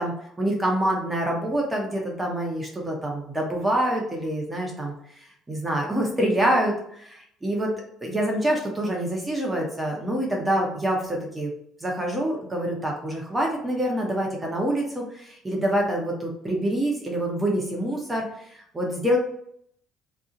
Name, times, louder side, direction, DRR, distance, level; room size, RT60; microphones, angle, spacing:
voice 1, 0.0-7.7 8.0-11.5 11.8-19.2, right 1 dB, 15° right, -1 dB, 0.7 m, -26 dB
2.6 x 2.0 x 3.7 m, 0.69 s
cardioid pair, 100°, 0 cm